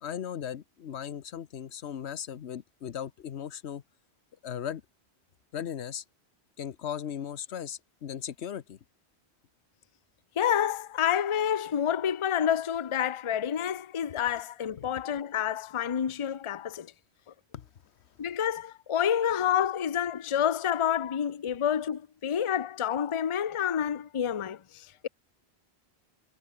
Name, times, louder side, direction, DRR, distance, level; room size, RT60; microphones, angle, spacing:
voice 1, 0.0-3.8 4.4-4.8 5.5-6.0 6.6-8.8 14.8-14.9 17.5-17.7, left 9 dB, 85° left, 1.1 m, -37 dB
voice 2, 10.4-16.9 18.2-25.1, left 9 dB, 35° left, 0.6 m, -28 dB
omnidirectional pair, 1.1 m